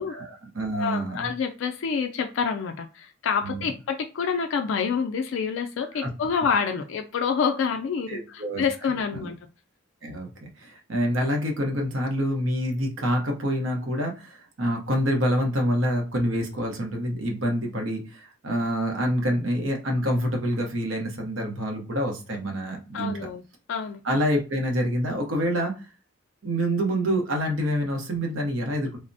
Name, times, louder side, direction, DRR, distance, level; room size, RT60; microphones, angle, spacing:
voice 1, 0.0-1.3 3.4-3.6 5.9-6.1 8.1-8.6 9.1-9.3 10.0-23.3 24.0-25.9 26.4-29.0, equal, 65° right, 0.8 m, -27 dB
voice 2, 0.7-9.4 22.9-23.4 23.7-24.0, left 6 dB, 65° left, 0.3 m, -27 dB
3.2 x 2.0 x 2.6 m
head